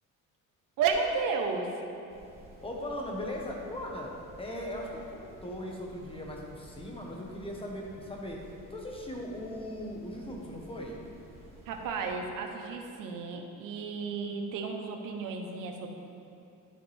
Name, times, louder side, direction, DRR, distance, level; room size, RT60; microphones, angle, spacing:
voice 1, 0.8-1.8 11.7-15.9, right 5 dB, 70° right, 3 dB, 1.0 m, -32 dB
sound 1, 2.1-12.1, right 1 dB, 20° right, 1.9 m, -53 dB
voice 2, 2.6-4.1 4.4-8.4 8.7-11.0, left 1 dB, 15° left, -1 dB, 1.2 m, -38 dB
12.0 x 5.5 x 3.4 m, 2.7 s
cardioid pair, 140°, 34 cm